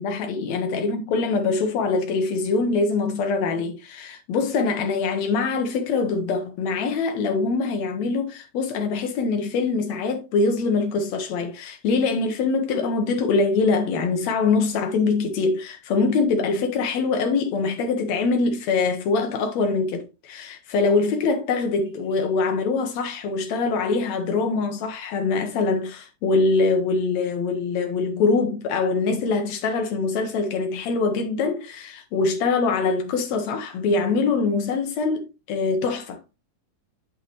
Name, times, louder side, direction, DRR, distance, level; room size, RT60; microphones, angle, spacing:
voice 1, 0.0-36.2, left 4 dB, 85° left, 1.5 m, -23 dB
8.5 x 7.2 x 3.0 m
omnidirectional pair, 4.6 m